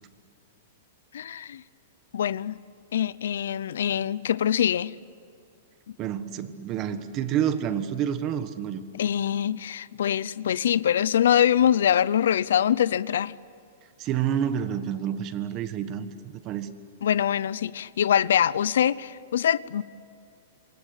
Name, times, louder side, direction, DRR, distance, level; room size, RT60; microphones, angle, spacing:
voice 1, 1.1-1.6 2.1-2.6 2.9-4.9 8.9-13.3 17.0-19.8, left 9 dB, 80° left, 0.7 m, -24 dB
voice 2, 6.0-8.8 14.0-16.1 16.4-16.7, right 9 dB, 25° right, 1.3 m, -28 dB
27.5 x 24.5 x 8.5 m
supercardioid pair, 170°, 0 cm